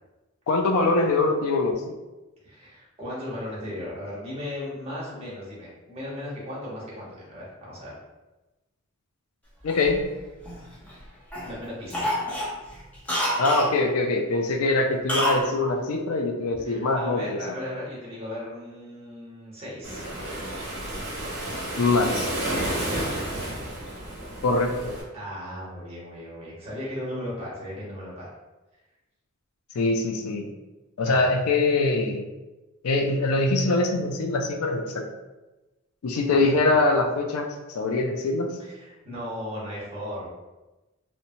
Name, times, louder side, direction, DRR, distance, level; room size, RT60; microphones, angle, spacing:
voice 1, 0.5-2.0 9.6-10.0 13.4-17.4 21.8-22.3 24.4-25.0 29.8-30.5 31.0-32.2 32.8-35.0 36.0-38.5, left 2 dB, 80° left, 3 dB, 0.4 m, -23 dB
voice 2, 2.4-7.9 11.4-12.1 16.5-20.1 22.6-23.0 25.1-28.3 31.0-31.3 36.3-36.5 38.6-40.3, left 1 dB, 30° right, -7 dB, 0.9 m, -36 dB
Cough, 9.7-11.0 11.3-11.5 11.9-13.7 15.1-15.5 15.7-15.8, equal, 5° left, 0.5 m, -28 dB
Waves surf, 19.8-25.0, right 1 dB, 55° right, 0.9 m, -31 dB
2.9 x 2.1 x 2.6 m, 1.1 s
head